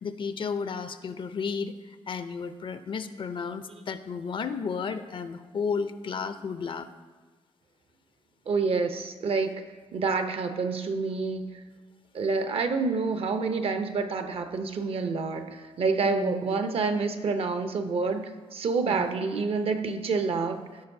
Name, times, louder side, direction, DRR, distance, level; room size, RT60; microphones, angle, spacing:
voice 1, 0.0-6.9 16.0-16.8 18.9-19.1, left 5 dB, 50° left, 11 dB, 0.5 m, -33 dB
voice 2, 8.5-9.6 9.9-11.5 12.1-20.6, right 4 dB, 60° right, 9 dB, 0.6 m, -28 dB
14.5 x 5.3 x 2.6 m, 1.4 s
cardioid pair, 95°, 11 cm